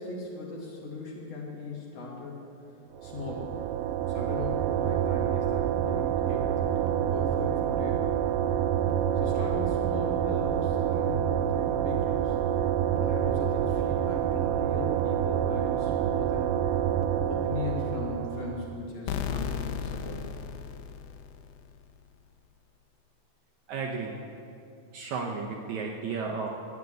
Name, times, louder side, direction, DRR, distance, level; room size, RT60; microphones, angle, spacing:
voice 1, 0.0-2.4 3.0-3.5 4.0-8.2 9.2-12.4 13.0-16.6 17.3-20.4, left 3 dB, 50° left, -3 dB, 3.1 m, -38 dB
sound 1, 3.0-18.8, right 10 dB, 85° right, 2.4 m, -27 dB
sound 2, 19.1-21.8, left 7 dB, 75° left, 1.9 m, -34 dB
voice 2, 23.7-24.1 24.9-26.5, right 5 dB, 70° right, 0 dB, 1.9 m, -33 dB
12.0 x 9.5 x 9.2 m, 2.8 s
omnidirectional pair, 4.2 m